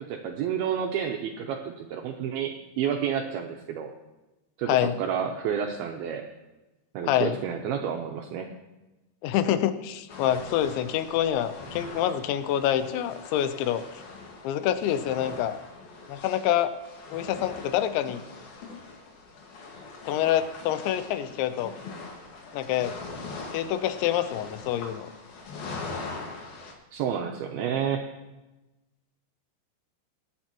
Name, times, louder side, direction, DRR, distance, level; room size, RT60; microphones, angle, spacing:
voice 1, 0.1-3.9 4.6-6.2 6.9-8.5 26.9-28.1, right 8 dB, 90° right, 2 dB, 2.2 m, -30 dB
voice 2, 7.0-7.4 9.2-13.8 14.4-15.6 16.1-16.7 17.1-18.2 20.1-21.7 22.5-23.0 23.5-25.1, left 11 dB, 85° left, 11 dB, 3.0 m, -26 dB
sound 1, 10.1-26.7, left 3 dB, 60° left, 3.2 m, -42 dB
24.0 x 9.1 x 2.9 m, 1.1 s
omnidirectional pair, 5.2 m